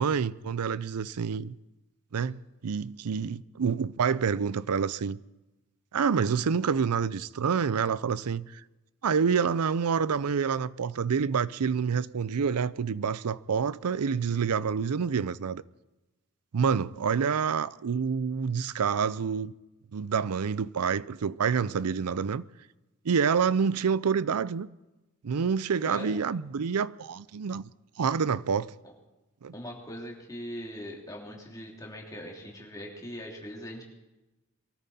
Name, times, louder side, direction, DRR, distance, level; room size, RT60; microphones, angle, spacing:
voice 1, 0.0-1.5 2.1-5.2 5.9-8.6 9.0-15.6 16.5-19.5 19.9-22.4 23.0-24.7 25.2-27.7 28.0-28.7 29.4-29.5, right 6 dB, 90° right, 0.5 m, -27 dB
voice 2, 25.8-26.2 29.5-33.8, equal, 15° left, 3.0 m, -41 dB
23.0 x 13.5 x 4.2 m
head